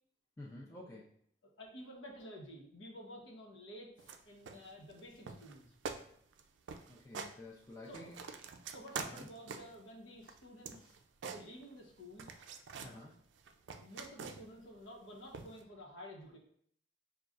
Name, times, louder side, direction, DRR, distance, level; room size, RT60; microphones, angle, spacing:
voice 1, 0.4-1.1 6.9-8.2 9.0-9.3 12.8-13.2, left 1 dB, 15° left, -5 dB, 0.5 m, -50 dB
voice 2, 1.4-5.7 7.8-8.1 8.7-10.9 11.3-12.3 13.8-16.4, equal, 90° left, -1 dB, 1.0 m, -51 dB
sound 1, 4.0-4.2 4.5-5.0 5.3-5.6 5.8-6.0 6.3-6.4 6.7-7.3 7.7-9.8 10.2-11.9 12.2-13.0 13.4-14.6 15.3-15.6, right 5 dB, 80° right, 0.4 m, -45 dB
6.4 x 2.3 x 2.4 m, 0.65 s
head